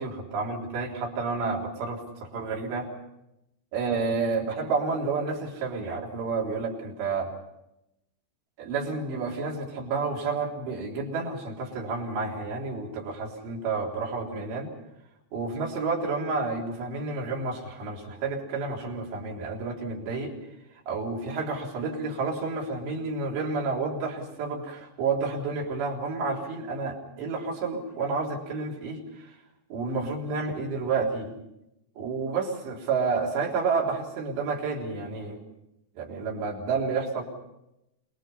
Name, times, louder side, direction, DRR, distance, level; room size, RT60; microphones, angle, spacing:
voice 1, 0.0-2.9 3.7-7.3 8.6-14.7 15.3-20.3 20.9-29.4 29.7-31.4 32.0-35.4 36.0-37.2, right 4 dB, 80° right, -2 dB, 6.0 m, -30 dB
28.0 x 21.5 x 5.7 m, 0.87 s
omnidirectional pair, 4.9 m